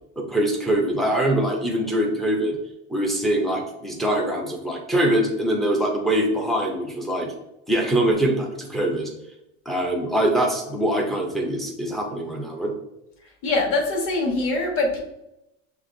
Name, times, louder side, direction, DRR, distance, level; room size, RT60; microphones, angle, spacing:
voice 1, 0.2-2.6 2.9-7.3 7.7-9.1 9.7-12.7, right 1 dB, ahead, -1 dB, 0.3 m, -23 dB
voice 2, 13.4-15.0, left 2 dB, 40° left, 1 dB, 1.1 m, -23 dB
6.5 x 3.2 x 2.5 m, 0.88 s
cardioid pair, 170°, 35 cm